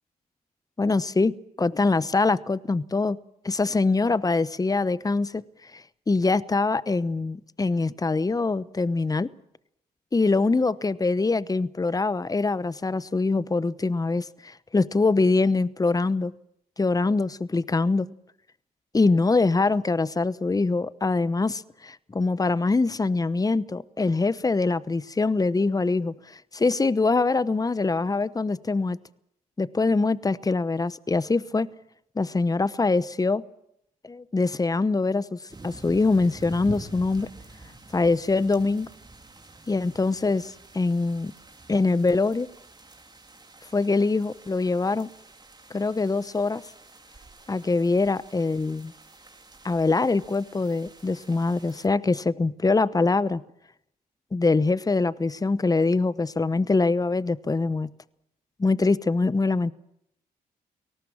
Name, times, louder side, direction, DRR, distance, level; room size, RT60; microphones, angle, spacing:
voice 1, 0.8-3.2 3.4-5.4 5.7-9.3 10.1-16.3 16.8-18.1 18.9-29.0 29.6-31.7 32.2-33.4 34.0-35.4 35.6-37.3 37.9-38.9 39.7-41.3 41.7-42.5 43.7-45.1 45.7-46.6 47.5-48.9 49.6-53.4 54.3-57.9 58.6-59.7, left 3 dB, 25° left, 17 dB, 1.0 m, -24 dB
sound 1, 35.5-51.9, right 3 dB, 25° right, 3.7 m, -47 dB
29.5 x 18.5 x 7.4 m, 0.77 s
supercardioid pair, 55°, 16 cm